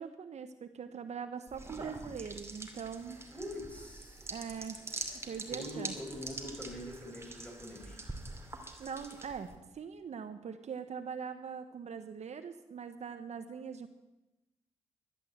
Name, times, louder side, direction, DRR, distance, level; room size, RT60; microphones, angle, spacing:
voice 1, 0.0-3.2 4.3-4.8 5.2-5.9 8.8-13.9, right 6 dB, 60° right, 9 dB, 1.1 m, -42 dB
sound 1, 1.5-9.6, right 2 dB, 20° right, 2.5 m, -45 dB
voice 2, 3.3-4.3 5.5-8.0, equal, 10° left, 1 dB, 5.8 m, -43 dB
12.0 x 12.0 x 7.9 m, 1.0 s
cardioid pair, 75°, 13 cm